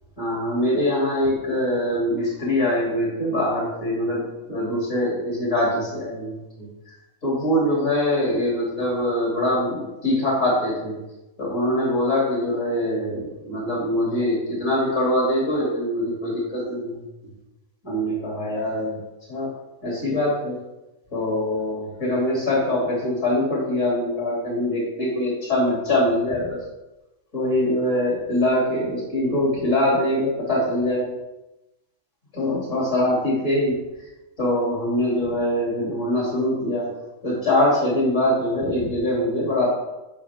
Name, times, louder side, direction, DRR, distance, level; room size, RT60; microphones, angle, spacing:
voice 1, 0.2-4.2 4.5-6.7 7.2-10.9 11.4-16.9 17.8-19.0 19.3-19.5 19.8-20.6 21.1-26.6 27.3-31.1 32.3-33.8 34.4-36.9 37.2-39.7, left 1 dB, 65° left, -5 dB, 3.3 m, -23 dB
15.0 x 5.6 x 3.6 m, 1.0 s
omnidirectional pair, 1.4 m